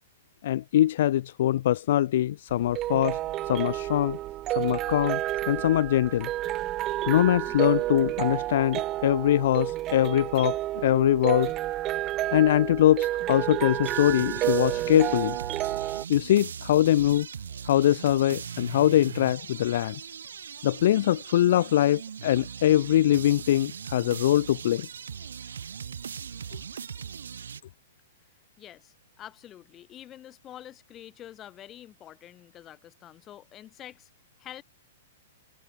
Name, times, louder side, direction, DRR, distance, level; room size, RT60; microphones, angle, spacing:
voice 1, 0.4-3.2 3.5-4.2 4.6-5.2 5.5-6.3 7.1-11.5 12.3-15.4 16.1-17.3 17.6-20.0 20.6-24.9, left 12 dB, 60° left, 0.7 m, -23 dB
sound 1, 2.5-16.1, right 15 dB, 25° right, 0.7 m, -30 dB
sound 2, 13.8-27.6, right 7 dB, 90° right, 6.0 m, -40 dB
voice 2, 28.6-34.1 34.4-34.6, left 12 dB, 20° left, 1.8 m, -47 dB
hypercardioid pair, 145°, 0 cm